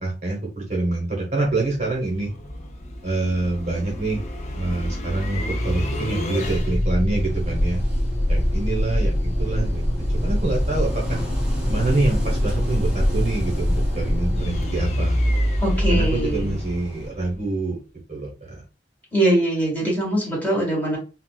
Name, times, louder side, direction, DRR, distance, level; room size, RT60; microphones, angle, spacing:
voice 1, 0.0-2.3 3.0-4.2 4.5-7.8 8.3-11.2 11.7-15.2 15.9-17.8 18.1-18.6, right 2 dB, 40° right, -3 dB, 0.9 m, -26 dB
sound 1, 1.4-17.4, equal, 40° left, 0.5 m, -24 dB
Wind / Waves surf, 7.1-17.1, equal, 5° right, 1.1 m, -34 dB
voice 2, 15.6-16.5 19.1-21.0, right 1 dB, 10° left, -4 dB, 1.6 m, -22 dB
3.9 x 2.0 x 2.3 m, 0.32 s
head